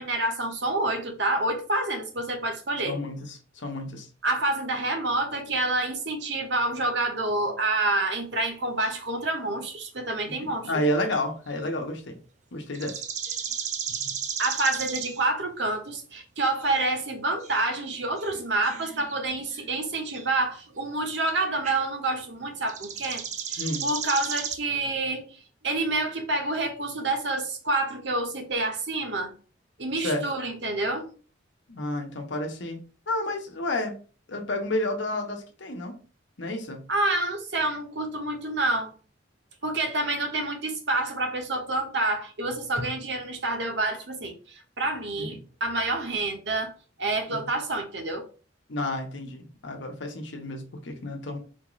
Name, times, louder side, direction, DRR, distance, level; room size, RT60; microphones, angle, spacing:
voice 1, 0.0-3.0 4.2-10.7 14.4-25.3 25.6-29.3 29.8-31.1 36.9-38.9 39.6-46.7 47.0-48.2, right 2 dB, 65° right, 0.9 m, -28 dB
voice 2, 2.8-4.1 10.3-12.2 12.5-13.0 23.6-23.9 30.0-30.2 31.7-33.9 34.3-36.0 36.4-36.8 45.2-45.4 47.3-47.5 48.7-51.4, left 1 dB, 75° left, 0.9 m, -31 dB
sound 1, 8.8-9.0 10.7-10.8 11.1-11.2 12.7-15.2 16.6-16.8 17.4-19.7 20.1-20.3 21.6-21.8 22.6-24.6, right 8 dB, 35° right, 0.4 m, -34 dB
4.3 x 2.5 x 3.0 m
head